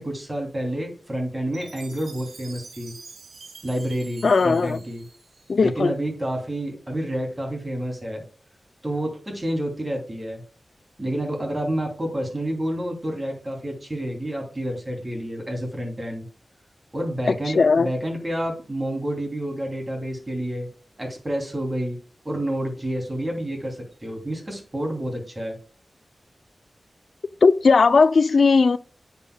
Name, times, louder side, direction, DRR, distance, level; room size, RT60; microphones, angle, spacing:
voice 1, 0.0-2.9 3.6-5.0 5.6-8.2 8.8-10.4 11.0-16.3 16.9-20.7 21.0-22.0 22.2-25.6, right 1 dB, 25° right, 2.8 m, -29 dB
Chime, 1.5-5.8, right 4 dB, 85° right, 1.8 m, -46 dB
voice 2, 4.2-4.8 5.5-5.9 17.3-17.9 27.4-28.8, left 4 dB, 70° left, 0.3 m, -17 dB
9.7 x 7.3 x 2.2 m
wide cardioid pair, 105°, 0 cm